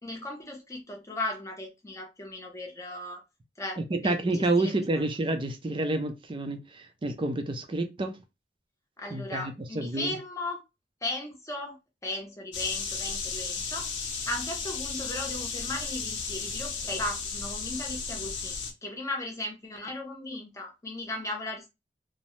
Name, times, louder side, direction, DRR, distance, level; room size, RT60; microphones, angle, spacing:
voice 1, 0.0-3.2 3.6-4.7 9.0-10.6 11.0-11.8 12.0-13.9 14.3-21.7, left 2 dB, 15° left, 0.7 m, -36 dB
voice 2, 3.8-8.2 9.1-10.2, right 2 dB, 30° right, 0.5 m, -29 dB
sound 1, 12.5-18.7, left 5 dB, 85° left, 0.7 m, -34 dB
2.7 x 2.0 x 3.1 m
head